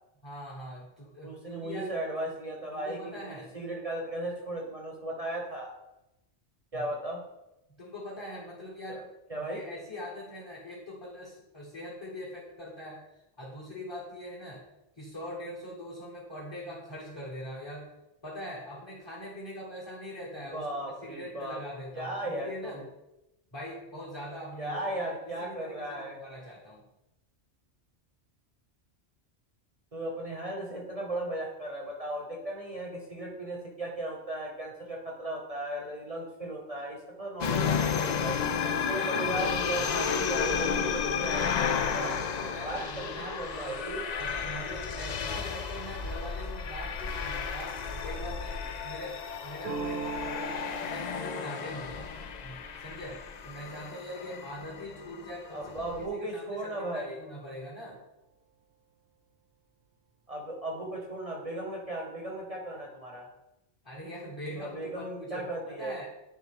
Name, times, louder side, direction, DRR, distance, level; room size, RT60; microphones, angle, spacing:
voice 1, 0.2-1.9 2.7-3.5 6.7-6.9 7.8-9.1 9.4-14.7 15.0-17.9 18.2-22.9 23.5-25.0 25.4-26.9 38.9-39.3 39.8-40.3 41.7-43.8 44.2-58.0 63.8-66.1, left 1 dB, 25° left, -5 dB, 1.2 m, -42 dB
voice 2, 1.2-5.7 6.7-7.2 8.9-9.0 9.3-9.6 20.4-21.6 21.9-22.8 24.6-26.2 29.9-38.5 38.9-41.5 41.9-42.1 42.6-44.0 55.5-57.2 60.3-63.3 64.6-66.0, right 1 dB, 35° right, -1 dB, 0.8 m, -36 dB
sound 1, 37.4-56.1, left 6 dB, 55° left, 0.5 m, -32 dB
sound 2, 49.6-55.2, right 4 dB, 65° right, 0.9 m, -42 dB
9.9 x 3.6 x 3.5 m, 0.92 s
omnidirectional pair, 1.1 m